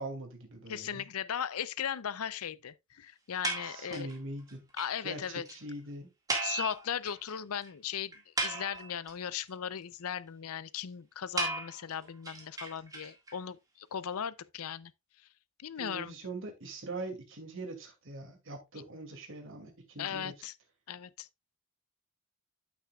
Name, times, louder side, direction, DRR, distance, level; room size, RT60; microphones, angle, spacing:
voice 1, 0.0-1.0 3.6-4.6 5.0-5.2 5.5-6.1 15.8-20.3, right 2 dB, 60° right, 2.4 m, -42 dB
voice 2, 0.7-4.1 4.8-5.4 6.4-14.9 15.6-16.1 20.0-20.5 20.9-21.3, left 8 dB, 75° left, 0.5 m, -37 dB
sound 1, 3.4-4.2 4.5-4.6 4.8-4.9 5.2-5.3 5.5-5.6 6.3-7.3 7.6-7.7 8.1-9.1 11.4-13.3, right 3 dB, 15° right, 1.9 m, -35 dB
8.9 x 8.5 x 2.3 m
head